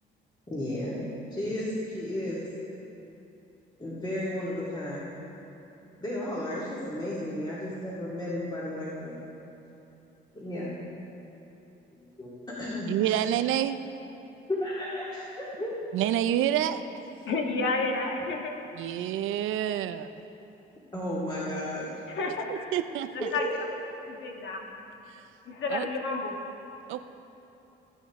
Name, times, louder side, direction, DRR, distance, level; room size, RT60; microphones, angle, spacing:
voice 1, 0.5-2.5 3.8-5.1 6.0-9.2 10.3-10.8 11.9-13.2 14.6-15.7 17.5-17.6 20.9-21.9 23.2-23.5, left 1 dB, 20° left, -8 dB, 2.2 m, -34 dB
voice 2, 12.9-13.8 15.9-16.8 18.8-20.1 22.5-23.1 25.7-25.9 26.9-27.0, right 11 dB, 85° right, 11 dB, 0.5 m, -27 dB
voice 3, 17.2-18.5 22.1-22.8 23.3-23.5 24.1-24.7 25.4-26.4, left 3 dB, 70° left, 1 dB, 1.5 m, -31 dB
17.0 x 9.0 x 3.6 m, 2.9 s
cardioid pair, 90°, 20 cm